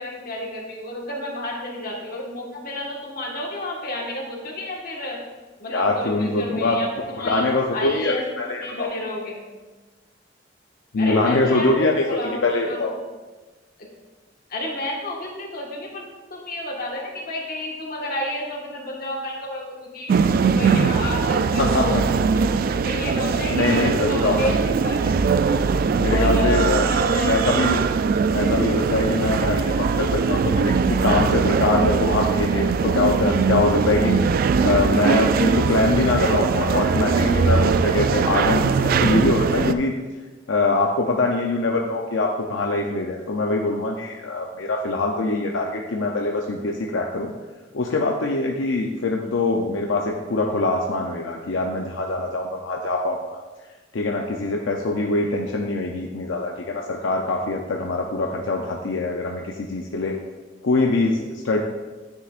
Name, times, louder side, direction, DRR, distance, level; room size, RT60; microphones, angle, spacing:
voice 1, 0.0-5.2 5.6-8.2 8.6-9.4 11.0-12.8 14.5-16.0 16.3-20.1 20.4-22.5 22.8-24.5 24.8-25.1 25.5-25.6 26.1-27.7 55.1-55.5, left 1 dB, 50° left, -1 dB, 1.5 m, -30 dB
voice 2, 5.7-6.8 7.2-8.9 10.9-13.0 21.6-22.0 23.5-24.5 26.0-26.9 27.3-27.8 28.3-34.2 34.6-39.9 40.5-47.3 47.7-53.4 53.9-60.2 60.6-61.6, left 2 dB, 80° left, 1 dB, 0.6 m, -23 dB
sound 1, 20.1-39.7, right 5 dB, 50° right, 0.3 m, -21 dB
9.5 x 6.6 x 2.5 m, 1.3 s
head